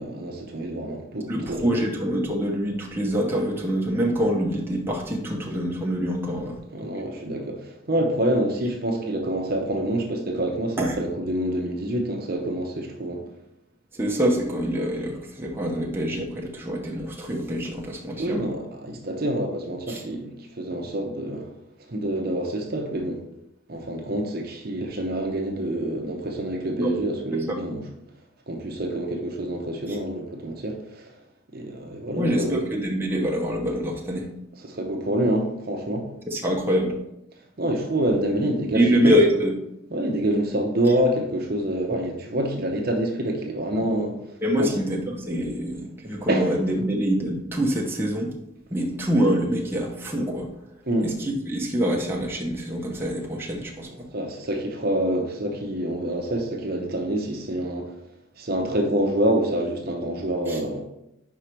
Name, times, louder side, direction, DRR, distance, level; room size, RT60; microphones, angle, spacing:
voice 1, 0.0-1.8 6.7-13.3 18.2-21.5 21.9-23.2 23.7-27.8 28.5-31.1 31.5-32.7 34.6-36.1 37.6-39.1 39.9-44.2 44.6-44.7 46.3-46.8 50.9-51.1 53.9-57.9 58.4-60.8, right 1 dB, 45° right, 0.8 m, -27 dB
voice 2, 1.3-6.9 10.8-10.9 13.9-18.5 19.9-20.0 26.8-26.9 27.5-27.6 29.9-30.0 32.2-34.3 36.3-36.9 38.7-39.5 44.4-48.3 48.7-50.5 51.0-53.9 60.5-60.6, equal, 10° right, 0.8 m, -25 dB
4.9 x 4.9 x 4.4 m
head